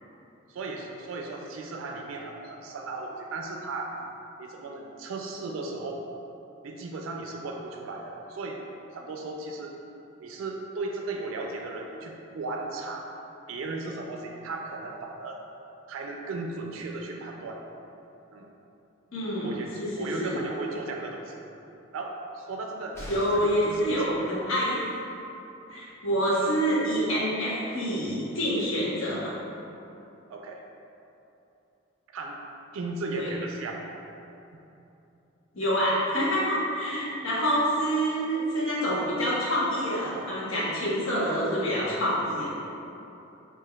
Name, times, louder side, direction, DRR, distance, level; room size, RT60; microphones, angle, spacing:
voice 1, 0.5-4.0 4.4-6.0 6.6-8.6 8.9-9.8 10.2-13.1 13.5-15.4 15.9-17.6 18.3-18.5 19.4-21.4 21.9-24.1 30.3-30.6 32.1-32.4 32.7-33.9, right 3 dB, 80° right, 1 dB, 0.4 m, -36 dB
voice 2, 19.1-20.4 23.1-24.9 25.7-29.3 33.1-33.3 35.5-42.6, equal, 85° left, -7 dB, 1.0 m, -27 dB
sound 1, 22.9-23.7 25.6-25.7 26.0-26.1, equal, 15° left, 0.6 m, -42 dB
5.6 x 2.8 x 2.3 m, 2.9 s
head